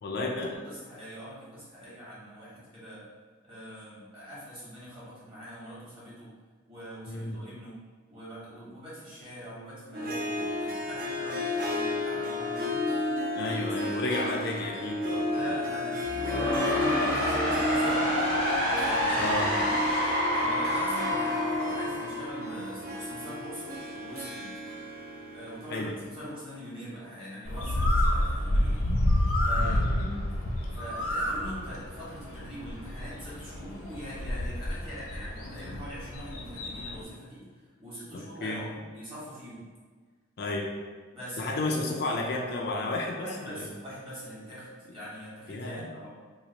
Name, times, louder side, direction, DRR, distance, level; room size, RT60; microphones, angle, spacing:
voice 1, 0.0-0.5 7.1-7.4 13.4-15.5 19.2-19.5 25.7-25.9 29.6-30.3 38.1-38.6 40.4-40.7 41.4-43.7 45.5-45.9, left 2 dB, 50° left, 0 dB, 0.3 m, -32 dB
voice 2, 0.6-3.1 3.4-6.3 6.7-7.8 8.1-13.0 13.9-14.0 15.3-18.2 18.6-20.0 20.4-24.5 25.3-28.9 29.4-29.9 30.7-39.7 41.1-41.8 43.1-46.1, equal, 25° right, -9 dB, 1.3 m, -43 dB
Harp, 9.9-26.4, left 1 dB, 40° right, 0.5 m, -32 dB
sound 1, 16.0-22.9, left 1 dB, 90° right, 1.2 m, -28 dB
Bird, 27.5-37.0, left 1 dB, 80° left, 0.7 m, -29 dB
2.9 x 2.4 x 3.9 m, 1.5 s
head